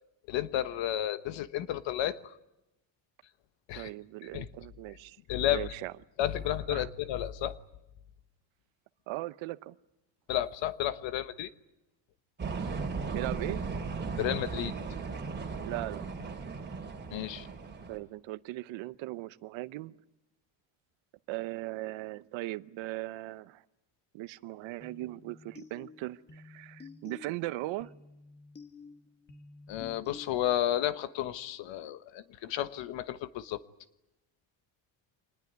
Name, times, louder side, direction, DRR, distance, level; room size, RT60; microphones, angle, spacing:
voice 1, 0.3-2.4 3.7-3.9 4.3-4.5 5.3-5.7 6.2-7.6 10.3-11.5 14.2-14.7 17.1-17.5 29.7-33.6, left 12 dB, 75° left, 13 dB, 1.3 m, -32 dB
voice 2, 3.7-5.2 5.5-5.9 6.7-6.9 9.1-9.8 13.1-13.6 15.6-16.0 17.9-20.0 21.3-23.6 24.1-27.9, right 18 dB, 85° right, 16 dB, 0.9 m, -38 dB
sound 1, 12.4-18.0, right 4 dB, 25° right, 2.7 m, -36 dB
sound 2, 24.8-30.8, left 4 dB, 25° left, 1.7 m, -52 dB
25.0 x 20.0 x 9.5 m, 0.92 s
cardioid pair, 145°, 45 cm